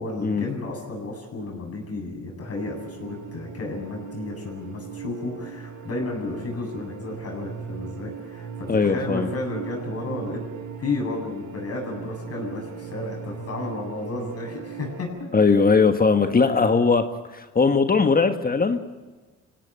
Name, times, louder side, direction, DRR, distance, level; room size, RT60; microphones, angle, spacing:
voice 1, 0.0-10.4 10.8-15.6 16.2-16.7, left 2 dB, 50° left, 1 dB, 8.0 m, -32 dB
sound 1, 2.6-15.0, right 6 dB, 75° right, 4.0 m, -38 dB
voice 2, 8.7-9.3 15.3-17.0 17.3-18.8, left 4 dB, 30° left, 7 dB, 1.5 m, -19 dB
25.0 x 17.0 x 9.1 m, 1.3 s
cardioid pair, 90°, 30 cm